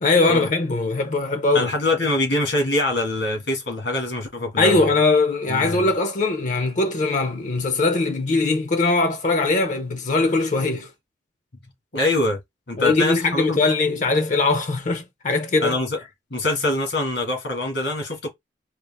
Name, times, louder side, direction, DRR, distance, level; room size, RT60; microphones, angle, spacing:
voice 1, 0.0-1.7 4.6-10.9 12.8-15.8, left 3 dB, 45° left, 0.6 m, -21 dB
voice 2, 1.5-4.9 5.5-5.9 11.9-12.4 12.7-13.6 15.6-16.0 16.3-18.3, left 2 dB, 75° left, 1.8 m, -24 dB
4.3 x 2.4 x 3.5 m
head